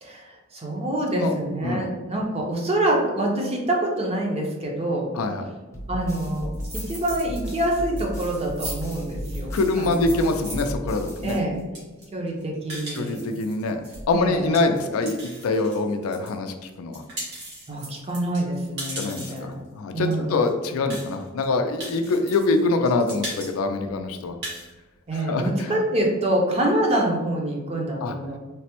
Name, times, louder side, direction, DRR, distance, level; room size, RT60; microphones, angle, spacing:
voice 1, 0.0-5.1 5.4-5.5 5.9-10.2 11.2-11.6 12.1-13.2 14.1-14.6 17.7-19.6 19.9-20.4 25.1-28.4, right 1 dB, 30° right, 0 dB, 0.6 m, -26 dB
voice 2, 5.2-5.5 9.5-11.4 13.0-17.0 19.0-24.4 25.3-25.7 28.0-28.1, left 3 dB, 75° left, 6 dB, 0.4 m, -24 dB
sound 1, 5.7-11.8, equal, 15° left, 0.6 m, -34 dB
sound 2, 6.5-7.4 7.7-16.3 16.7-19.5 20.1-20.2 20.4-20.5 20.9-21.4 21.8-22.6 22.8-23.5 23.8-23.9 24.2-24.7, right 1 dB, 55° right, 1.2 m, -38 dB
3.2 x 2.0 x 2.9 m, 1.2 s
head